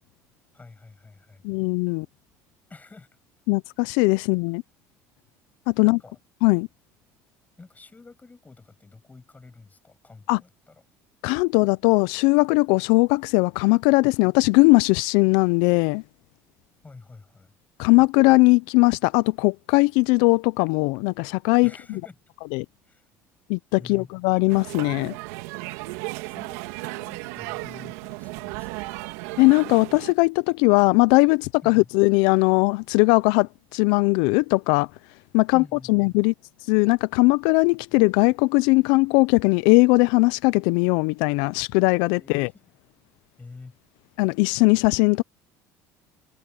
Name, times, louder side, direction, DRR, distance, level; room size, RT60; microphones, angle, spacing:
voice 1, 0.5-1.4 2.7-3.2 5.8-6.2 7.6-10.8 16.8-17.5 21.6-22.2 22.8-23.1 23.8-24.1 26.2-29.0 31.6-31.9 35.5-36.3 42.2-42.6 43.4-43.8, left 3 dB, 20° left, 7.0 m, -47 dB
voice 2, 1.4-2.1 3.5-4.6 5.7-6.0 6.4-6.7 10.3-10.4 11.2-16.0 17.8-21.7 22.5-22.7 23.5-25.2 29.4-34.9 35.3-35.6 35.9-36.3 36.7-42.5 44.2-45.2, left 26 dB, 75° left, 0.5 m, -19 dB
sound 1, 24.5-30.1, right 23 dB, 80° right, 2.8 m, -35 dB
supercardioid pair, 80°, 8 cm